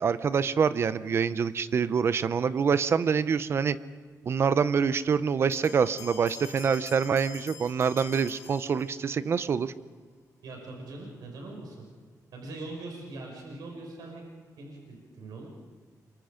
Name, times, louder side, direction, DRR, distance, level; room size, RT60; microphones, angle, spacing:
voice 1, 0.0-3.8 4.3-9.7, right 6 dB, 40° right, 14 dB, 0.7 m, -26 dB
sound 1, 5.5-9.3, left 7 dB, 75° left, 4.5 m, -46 dB
voice 2, 10.4-11.8 12.3-14.2 14.6-15.5, right 2 dB, 80° right, 0 dB, 5.8 m, -41 dB
29.5 x 24.0 x 5.1 m, 1.5 s
wide cardioid pair, 175°, 7 cm